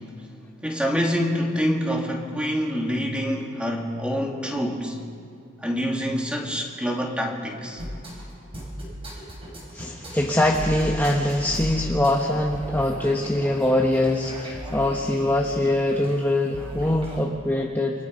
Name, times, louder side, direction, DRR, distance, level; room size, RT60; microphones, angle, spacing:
voice 1, 0.6-5.0 5.6-7.8, equal, 5° right, 0 dB, 3.0 m, -26 dB
sound 1, 7.8-17.3, equal, 30° right, 6.1 m, -37 dB
voice 2, 9.7-18.0, left 1 dB, 10° left, -1 dB, 1.4 m, -23 dB
29.0 x 26.0 x 5.5 m, 2.4 s
head